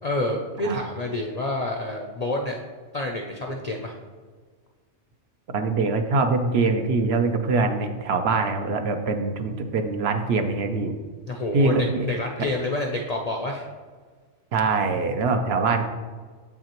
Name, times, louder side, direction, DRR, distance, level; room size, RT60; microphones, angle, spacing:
voice 1, 0.0-2.6 2.9-4.0 11.3-13.7, left 2 dB, 55° left, 1 dB, 0.4 m, -28 dB
voice 2, 5.5-10.9 11.5-12.0 12.4-12.5 14.5-15.8, right 3 dB, 65° right, 6 dB, 0.8 m, -23 dB
7.4 x 5.7 x 2.9 m, 1.5 s
omnidirectional pair, 1.2 m